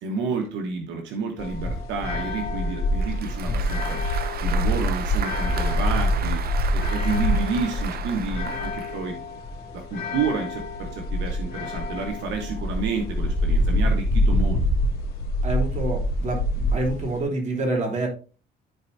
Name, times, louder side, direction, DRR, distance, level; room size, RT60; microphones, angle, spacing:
voice 1, 0.0-4.0 4.4-6.4 6.7-9.2 9.7-14.6, right 4 dB, 90° right, 2 dB, 1.4 m, -30 dB
sound 1, 1.4-17.2, left 1 dB, 60° left, 2.7 m, -25 dB
Applause, 3.0-9.0, right 9 dB, 60° right, 0.7 m, -35 dB
voice 2, 15.4-18.1, right 2 dB, 40° right, 0 dB, 3.3 m, -27 dB
13.5 x 4.5 x 2.7 m, 0.36 s
cardioid pair, 110°, 18 cm